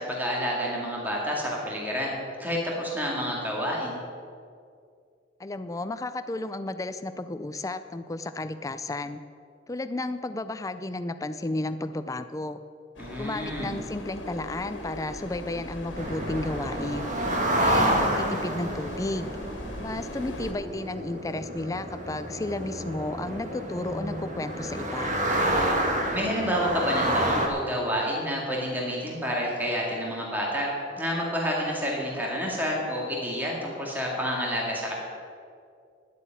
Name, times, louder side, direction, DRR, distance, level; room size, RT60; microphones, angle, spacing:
voice 1, 0.0-2.1 2.4-4.0 13.0-13.7 26.1-30.7 31.0-34.9, equal, 10° right, -3 dB, 2.1 m, -29 dB
voice 2, 5.4-9.2 9.7-12.6 13.2-17.1 17.6-19.3 19.8-25.2, left 2 dB, 20° left, 11 dB, 0.4 m, -33 dB
sound 1, 13.0-20.5, left 1 dB, 85° left, 1.9 m, -40 dB
sound 2, 16.0-27.5, right 1 dB, 40° right, 1.6 m, -29 dB
10.0 x 8.3 x 9.0 m, 2.3 s
head